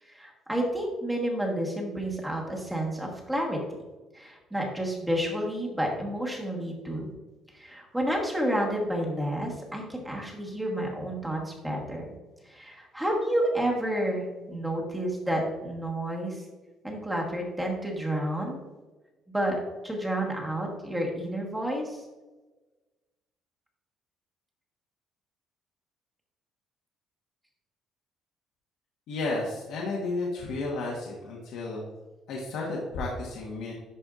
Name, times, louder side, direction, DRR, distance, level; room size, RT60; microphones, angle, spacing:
voice 1, 0.0-3.6 4.1-7.1 7.5-12.0 12.4-16.5 16.8-18.6 19.3-22.1, right 1 dB, 5° right, -1 dB, 1.3 m, -30 dB
voice 2, 29.1-31.9 32.3-33.7, left 2 dB, 70° left, -3 dB, 1.3 m, -32 dB
11.0 x 4.4 x 2.5 m, 1.2 s
cardioid pair, 165°, 0 cm